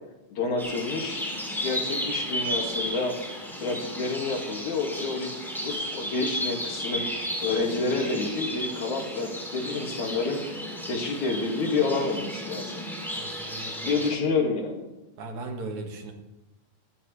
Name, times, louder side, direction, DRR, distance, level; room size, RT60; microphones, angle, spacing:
voice 1, 0.3-1.2 1.6-3.1 3.6-7.1 7.4-10.5 10.9-12.8 13.8-14.9, left 3 dB, 70° left, 2 dB, 3.4 m, -29 dB
sound 1, 0.6-14.1, equal, ahead, 3.5 m, -33 dB
voice 2, 13.2-14.0 15.2-16.1, right 3 dB, 70° right, 3 dB, 3.1 m, -38 dB
20.5 x 14.0 x 3.3 m, 0.97 s
omnidirectional pair, 3.6 m